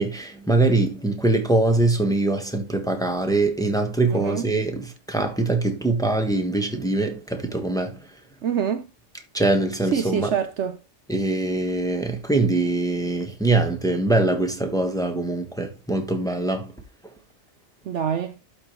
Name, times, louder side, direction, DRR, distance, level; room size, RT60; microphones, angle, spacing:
voice 1, 0.0-8.0 9.3-10.4 11.1-16.7, right 2 dB, 5° left, 1.2 m, -23 dB
voice 2, 4.1-4.5 8.4-8.9 9.9-10.8 17.9-18.3, right 8 dB, 65° right, 0.9 m, -25 dB
12.0 x 4.4 x 3.1 m
omnidirectional pair, 1.4 m